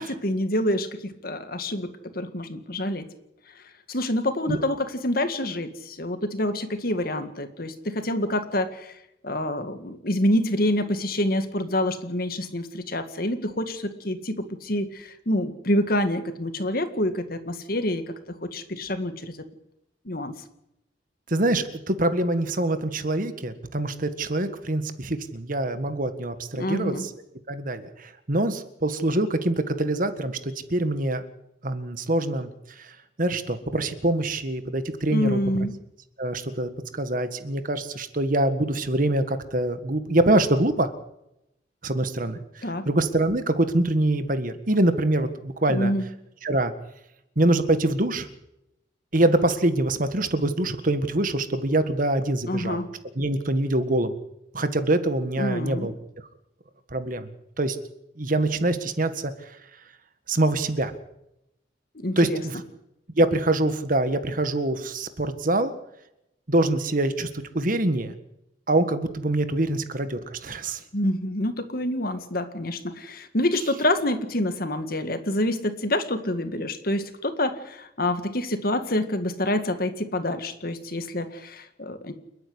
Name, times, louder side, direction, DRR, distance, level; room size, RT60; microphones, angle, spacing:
voice 1, 0.0-3.1 3.9-9.0 9.2-18.1 18.4-19.4 20.1-20.3 26.5-27.1 35.1-35.7 42.6-42.9 45.7-46.0 52.5-52.9 55.4-55.9 62.0-62.4 70.9-82.1, left 1 dB, 55° left, 9 dB, 2.0 m, -27 dB
voice 2, 21.3-26.9 27.5-31.2 31.6-32.5 32.8-32.9 33.2-35.4 36.2-40.9 41.8-45.9 46.4-46.7 47.4-48.3 49.1-52.8 53.1-54.1 54.5-55.9 56.9-57.3 57.6-57.8 58.2-59.3 60.3-60.9 62.1-62.6 63.2-65.7 66.5-68.1 68.7-70.8, right 1 dB, 50° right, 10 dB, 1.7 m, -24 dB
29.5 x 9.8 x 9.7 m, 0.87 s
head